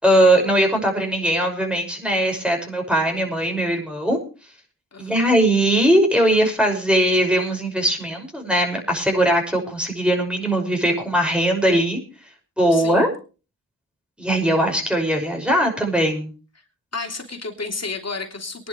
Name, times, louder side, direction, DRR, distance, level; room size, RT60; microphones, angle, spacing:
voice 1, 0.0-4.2 5.0-12.0 12.6-13.1 14.2-16.3, right 1 dB, 5° right, 2 dB, 5.9 m, -20 dB
voice 2, 4.9-5.3 12.7-13.1 16.9-18.7, left 3 dB, 40° left, 4 dB, 3.2 m, -31 dB
22.5 x 11.0 x 3.2 m, 0.34 s
cardioid pair, 55°, 37 cm